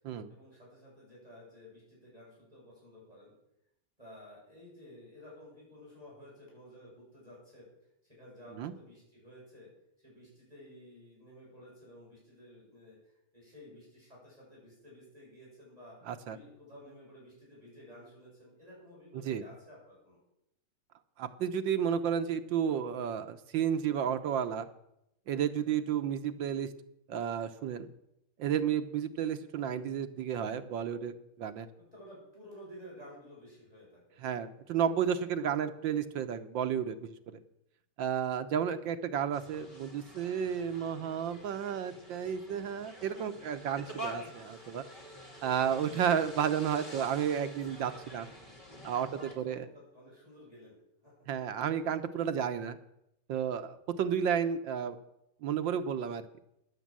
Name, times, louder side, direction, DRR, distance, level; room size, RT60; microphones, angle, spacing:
voice 1, 0.3-3.3 4.0-7.7 8.0-9.7 10.0-20.2 31.8-34.2 49.1-50.7 51.0-51.1, equal, 15° right, -6 dB, 8.0 m, -53 dB
voice 2, 16.1-16.4 19.2-19.4 21.2-24.7 25.3-26.7 27.1-27.9 28.4-31.7 34.2-37.1 38.0-44.8 45.4-48.3 48.8-49.1 49.4-49.6 51.3-52.8 53.3-55.0 55.4-56.3, right 8 dB, 70° right, 9 dB, 1.5 m, -32 dB
sound 1, 39.3-49.3, right 1 dB, 25° left, 2.4 m, -47 dB
13.5 x 10.5 x 7.5 m, 0.82 s
omnidirectional pair, 2.3 m